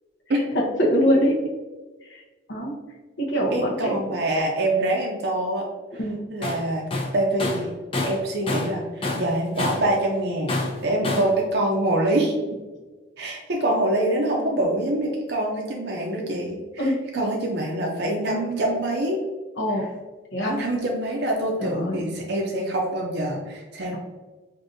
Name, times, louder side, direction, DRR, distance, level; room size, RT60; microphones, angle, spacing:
voice 1, 0.5-1.4 2.1-2.2 2.5-2.8 3.2-4.0 5.9-6.2 11.0-11.1 16.8-17.2 19.6-19.9 20.3-20.6 21.6-22.0, equal, 65° left, -4 dB, 0.8 m, -23 dB
voice 2, 3.5-5.6 6.3-6.9 7.1-7.7 8.0-10.5 10.8-12.3 13.2-19.2 20.4-24.0, right 1 dB, 55° right, 0 dB, 0.5 m, -25 dB
Tools, 6.4-6.6 6.9-8.8 9.0-9.9 10.5-11.3, left 2 dB, 25° left, 0.5 m, -27 dB
4.9 x 2.6 x 2.6 m, 1.3 s
head